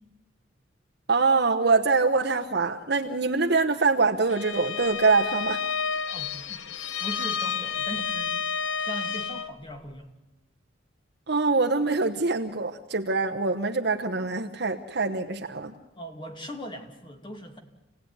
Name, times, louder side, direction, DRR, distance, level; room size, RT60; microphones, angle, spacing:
voice 1, 1.1-5.6 11.3-15.7, right 4 dB, 55° right, 3 dB, 1.1 m, -24 dB
Bowed string instrument, 4.3-9.6, left 6 dB, 80° left, 1.0 m, -30 dB
voice 2, 6.1-6.6 7.0-8.5 8.8-10.1 16.0-17.6, equal, 25° left, 5 dB, 2.5 m, -39 dB
27.5 x 17.5 x 9.6 m, 1.0 s
head